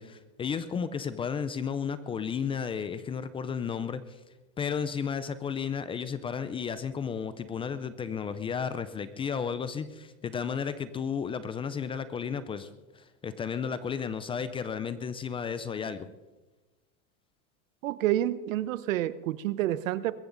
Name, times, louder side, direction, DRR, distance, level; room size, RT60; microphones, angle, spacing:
voice 1, 0.0-4.2 4.6-12.7 12.9-16.1, left 6 dB, 15° left, 13 dB, 0.4 m, -33 dB
voice 2, 17.8-20.1, right 13 dB, 85° right, 16 dB, 1.0 m, -28 dB
21.5 x 14.5 x 3.9 m, 1.1 s
supercardioid pair, 140°, 39 cm